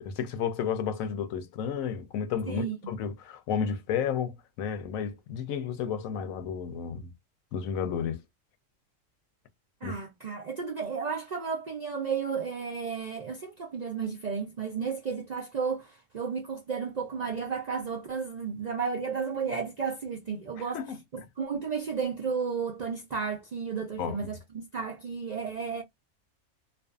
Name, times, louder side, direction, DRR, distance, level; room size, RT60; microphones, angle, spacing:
voice 1, 0.0-7.1 7.5-8.2 9.8-10.0 20.7-21.0 24.0-24.3, left 7 dB, 90° left, 1.0 m, -32 dB
voice 2, 2.5-3.0 9.8-20.8 21.4-25.8, right 5 dB, 65° right, 0.4 m, -33 dB
2.5 x 2.3 x 2.3 m
omnidirectional pair, 1.4 m